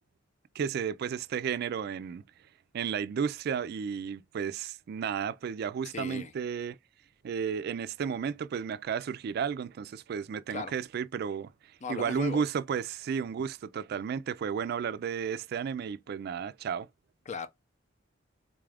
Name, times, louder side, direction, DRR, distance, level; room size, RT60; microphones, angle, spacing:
voice 1, 0.6-2.2 2.7-6.8 7.2-11.5 11.9-16.9, right 7 dB, 55° right, 0.3 m, -33 dB
voice 2, 5.9-6.3 10.5-10.7 11.8-12.4 17.3-17.5, left 5 dB, 40° left, 0.5 m, -37 dB
4.0 x 2.4 x 3.3 m
head